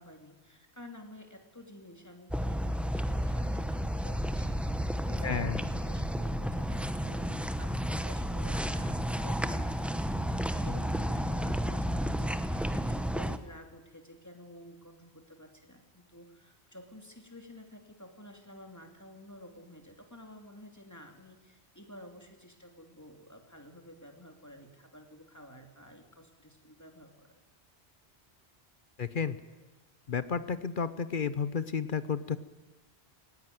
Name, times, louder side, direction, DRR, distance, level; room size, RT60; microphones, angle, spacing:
voice 1, 0.0-27.4, left 1 dB, 15° left, 4 dB, 2.8 m, -52 dB
sound 1, 2.3-13.4, equal, ahead, 0.9 m, -32 dB
voice 2, 5.2-5.6 29.0-29.4 30.1-32.4, left 6 dB, 55° left, 14 dB, 0.9 m, -32 dB
19.0 x 17.0 x 9.3 m, 1.2 s
omnidirectional pair, 1.1 m